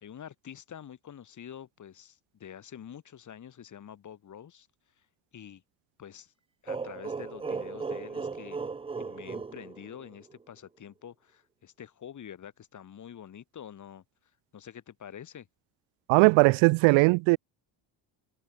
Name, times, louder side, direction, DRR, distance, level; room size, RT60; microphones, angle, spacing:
voice 1, 0.0-4.7 5.3-5.6 6.0-6.3 6.6-8.7 9.0-14.0 14.5-15.5, left 9 dB, 40° left, 2.0 m, -46 dB
sound 1, 6.7-10.4, right 4 dB, 15° right, 0.5 m, -36 dB
voice 2, 16.1-17.4, right 27 dB, 85° right, 0.7 m, -19 dB
cardioid pair, 110°, 45 cm